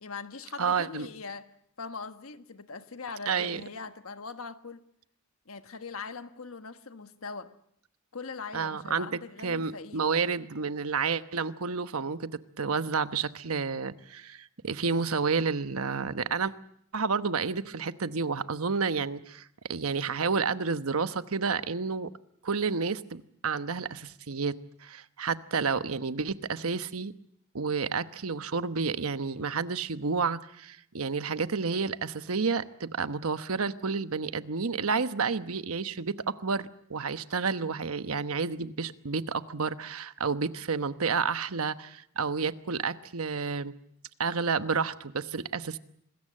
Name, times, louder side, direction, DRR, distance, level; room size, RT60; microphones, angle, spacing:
voice 1, 0.0-1.5 1.8-4.8 5.5-7.5 8.1-10.0, left 4 dB, 80° left, 1.4 m, -41 dB
voice 2, 0.6-1.1 3.3-3.6 8.5-12.3 12.6-16.5 16.9-22.1 22.4-24.5 24.8-27.1 27.5-43.7 44.2-45.8, right 5 dB, 85° right, 1.0 m, -30 dB
26.5 x 21.0 x 7.6 m
head